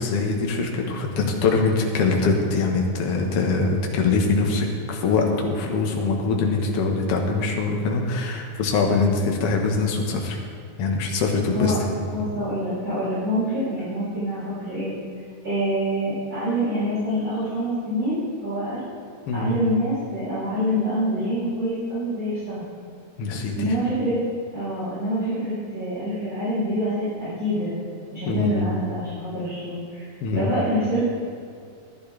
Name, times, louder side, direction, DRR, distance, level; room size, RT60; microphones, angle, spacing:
voice 1, 0.0-10.4 10.8-12.1 19.3-19.6 23.2-23.7 28.3-28.7 30.2-30.6, left 3 dB, 55° left, 1 dB, 1.9 m, -23 dB
voice 2, 12.1-14.9 15.4-18.9 19.3-22.6 23.6-24.2 24.5-27.7 28.1-30.1 30.3-31.1, equal, 35° right, -13 dB, 3.9 m, -26 dB
14.0 x 11.0 x 3.4 m, 2.3 s
omnidirectional pair, 3.6 m